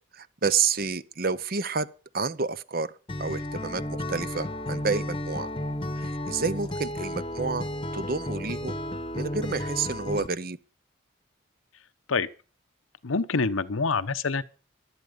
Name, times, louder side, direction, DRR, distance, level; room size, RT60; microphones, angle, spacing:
voice 1, 0.1-1.9 2.1-2.9 3.2-5.5 6.0-8.7 9.1-10.6, right 5 dB, 50° right, 0.8 m, -29 dB
Acoustic guitar, 3.1-10.3, left 1 dB, 25° left, 1.0 m, -33 dB
voice 2, 13.0-14.4, left 4 dB, 90° left, 0.9 m, -26 dB
16.0 x 12.0 x 5.2 m
head